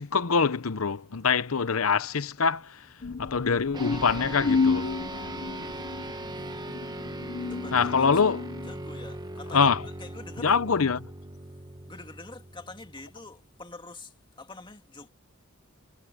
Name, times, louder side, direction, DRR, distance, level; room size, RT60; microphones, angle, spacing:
voice 1, 0.0-2.8 3.2-4.9 7.7-8.4 9.5-9.8 10.4-11.0, left 5 dB, 90° left, 0.9 m, -24 dB
sound 1, 3.0-8.7, left 4 dB, 50° left, 0.7 m, -31 dB
sound 2, 3.7-13.4, right 1 dB, 20° right, 1.4 m, -39 dB
voice 2, 5.4-6.3 6.7-6.8 7.4-8.3 8.6-10.6 11.4-15.1, left 3 dB, 25° left, 2.5 m, -46 dB
head